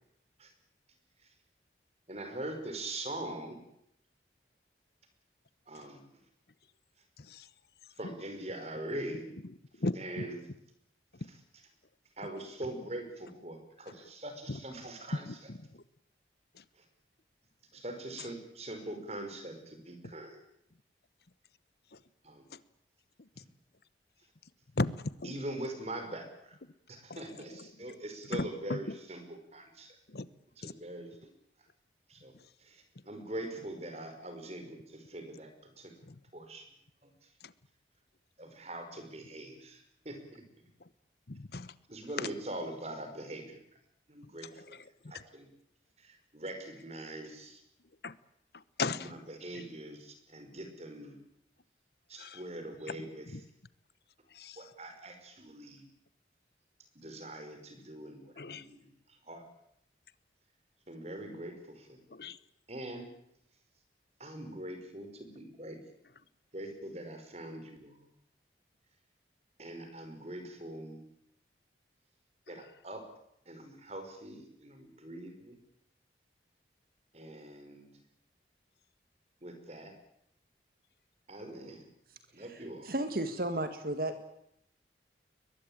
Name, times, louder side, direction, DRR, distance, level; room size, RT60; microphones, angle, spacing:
voice 1, 2.1-3.6 5.7-6.0 7.9-9.2 10.0-10.4 12.2-15.3 16.8-16.9 17.7-20.4 22.2-22.4 25.2-26.6 26.9-30.0 30.6-31.1 32.1-32.3 32.6-35.9 36.3-36.7 37.0-37.3 38.4-40.4 41.9-43.6 44.1-44.8 45.1-45.5 46.0-47.6 49.0-51.2 52.1-53.3 54.6-55.9 57.0-59.4 60.9-62.0 62.7-63.0 64.2-65.8 66.5-68.1 69.6-71.0 72.5-73.0 73.5-75.6 77.1-77.9 79.4-79.9 81.3-81.8 82.3-82.9, right 1 dB, 35° right, 7 dB, 5.2 m, -43 dB
voice 2, 7.2-7.5 8.0-8.1 9.5-10.3 11.1-11.3 14.5-14.6 15.2-15.8 16.5-16.6 20.0-20.1 21.9-22.0 22.5-22.6 23.2-23.4 24.7-25.3 27.1-27.7 28.3-29.0 30.1-30.3 30.6-30.7 32.3-32.4 36.0-36.2 37.4-37.5 40.8-40.9 41.3-41.7 42.2-42.3 44.6-45.2 48.0-48.2 48.5-49.1 49.5-49.7 52.2-52.4 52.9-53.0 53.3-53.4 54.3-54.7 58.4-58.7 62.1-62.4 72.5-72.6, left 3 dB, 60° left, 17 dB, 1.0 m, -38 dB
voice 3, 82.3-84.2, right 1 dB, 55° right, 9 dB, 1.7 m, -34 dB
22.5 x 21.0 x 8.9 m, 0.75 s
head